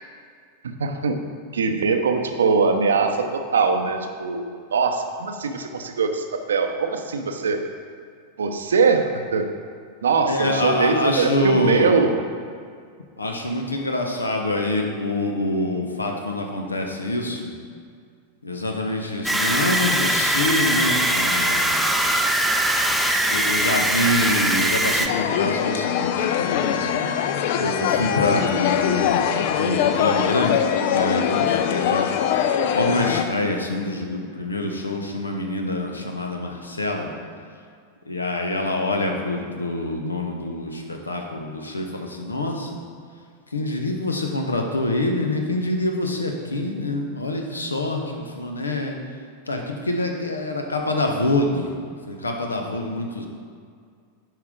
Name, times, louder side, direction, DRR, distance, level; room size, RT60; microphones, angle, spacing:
voice 1, 0.6-1.2 1.5-7.6 8.4-9.5 10.0-12.1, right 4 dB, 65° right, 6 dB, 0.6 m, -22 dB
voice 2, 10.2-12.0 13.2-17.5 18.4-21.8 23.3-27.2 27.5-32.1 32.7-37.1 38.1-42.8 43.5-49.0 49.5-51.8 52.1-53.3, left 1 dB, 80° left, 3 dB, 0.9 m, -26 dB
sound 1, 19.2-25.1, right 1 dB, 5° right, 0.5 m, -21 dB
sound 2, 25.1-33.2, left 9 dB, 50° left, 0.4 m, -22 dB
9.1 x 5.5 x 3.6 m, 2.2 s
figure-of-eight pair, 90°, 0 cm